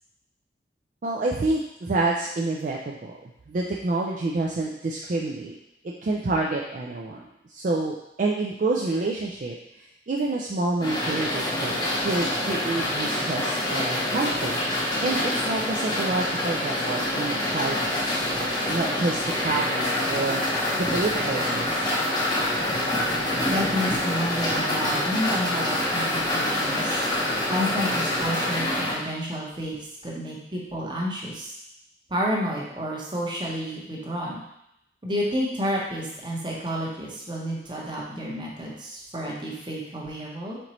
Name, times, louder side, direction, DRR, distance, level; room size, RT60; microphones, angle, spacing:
voice 1, 1.0-5.5 6.0-7.2 7.5-14.5 15.0-20.4 20.9-21.9, right 2 dB, 45° right, -2 dB, 0.4 m, -28 dB
sound 1, 10.8-28.9, left 1 dB, 25° left, 0.7 m, -26 dB
voice 2, 23.5-27.0 27.5-29.8 30.0-31.5 32.1-34.4 35.0-40.6, equal, 25° right, -4 dB, 0.9 m, -30 dB
4.4 x 3.9 x 3.0 m, 0.81 s
head